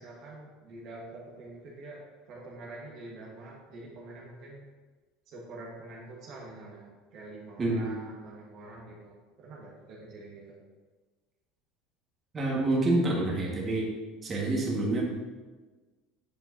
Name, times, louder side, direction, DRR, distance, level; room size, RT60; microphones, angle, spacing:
voice 1, 0.0-2.0 2.3-4.6 5.3-10.5, right 2 dB, 55° right, -3 dB, 1.4 m, -46 dB
voice 2, 12.3-13.9 14.2-15.1, right 2 dB, 30° right, -3 dB, 1.7 m, -27 dB
8.9 x 4.4 x 2.8 m, 1.3 s
hypercardioid pair, 90°, 0 cm